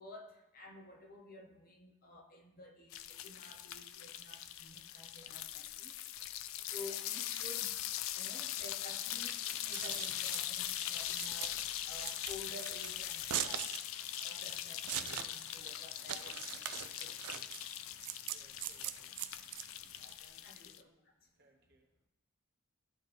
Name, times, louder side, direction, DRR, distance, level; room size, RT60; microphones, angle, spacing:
voice 1, 0.0-5.9 6.7-7.8 8.1-13.7 14.2-17.4 19.8-20.9, left 1 dB, 40° left, 1 dB, 0.9 m, -53 dB
sound 1, 2.9-20.8, left 12 dB, 65° left, 0.3 m, -41 dB
Scissors, 9.5-20.1, right 12 dB, 90° right, 0.4 m, -42 dB
voice 2, 18.3-19.1 20.2-21.0 21.4-21.9, right 1 dB, 45° right, 1 dB, 1.1 m, -67 dB
13.0 x 4.3 x 3.4 m, 0.99 s
head